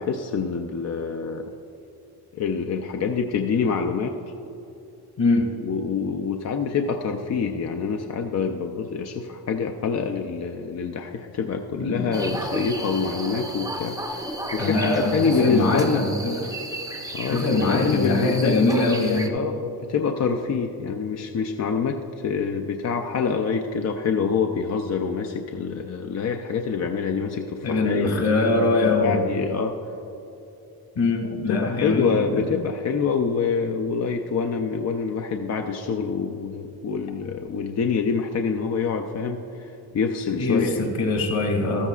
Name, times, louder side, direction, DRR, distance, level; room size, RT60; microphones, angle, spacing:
voice 1, 0.0-1.5 2.3-4.2 5.6-16.0 17.1-18.7 19.3-29.8 31.2-40.9, left 5 dB, 45° left, 4 dB, 0.5 m, -26 dB
voice 2, 11.8-12.2 14.6-16.3 17.3-19.3 27.6-29.2 31.0-32.2 40.4-41.9, left 2 dB, 65° left, 2 dB, 2.0 m, -22 dB
sound 1, 12.1-19.3, right 1 dB, 10° right, 0.6 m, -33 dB
14.0 x 13.0 x 2.4 m, 3.0 s
wide cardioid pair, 175°, 39 cm